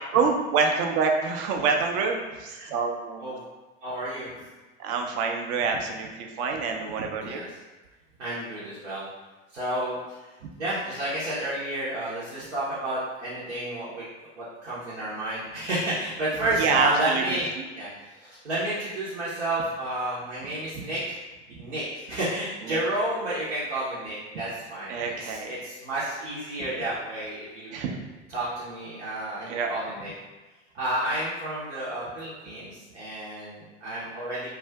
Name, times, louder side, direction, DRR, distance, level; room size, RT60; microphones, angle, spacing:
voice 1, 0.1-3.3 4.8-7.5 10.4-10.5 16.5-17.6 20.8-20.9 21.6-21.7 22.7-22.8 24.3-24.4 24.9-25.6 27.7-28.0 29.5-29.7, right 5 dB, 40° right, 3 dB, 0.5 m, -27 dB
voice 2, 3.8-4.3 7.1-7.5 8.2-9.1 9.5-10.0 10.6-14.0 14.4-17.5 17.8-21.2 21.5-27.8 28.3-30.1 30.7-34.5, right 1 dB, 80° right, -10 dB, 0.9 m, -31 dB
2.4 x 2.3 x 3.4 m, 1.2 s
figure-of-eight pair, 80°, 35 cm